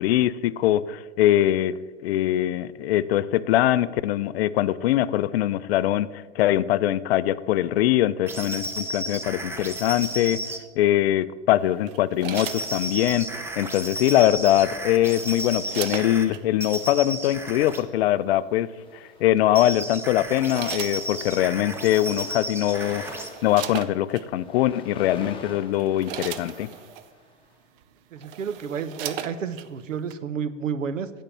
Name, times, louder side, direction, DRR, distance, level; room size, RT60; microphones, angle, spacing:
voice 1, 0.0-10.4 10.8-13.3 13.6-18.7 19.2-23.0 23.4-26.7, left 13 dB, 55° left, 16 dB, 0.5 m, -22 dB
sound 1, 8.3-10.6 12.3-16.3 16.6-17.9 19.5-23.3, right 1 dB, 5° right, 0.6 m, -33 dB
sound 2, 11.9-13.2 14.6-16.4 17.5-17.7 19.4-19.7 20.2-21.6 22.4-22.5 22.8-24.3 25.0-25.2 25.6-27.1 27.8-27.9 28.2-29.7 30.1-30.2, right 10 dB, 45° right, 0.8 m, -37 dB
sound 3, 18.8-19.8 20.5-20.8 21.0-27.5, left 3 dB, 15° left, 1.3 m, -45 dB
voice 2, 28.1-31.1, right 6 dB, 90° right, 13 dB, 0.8 m, -31 dB
8.9 x 5.3 x 7.3 m, 1.3 s
hypercardioid pair, 120°, 38 cm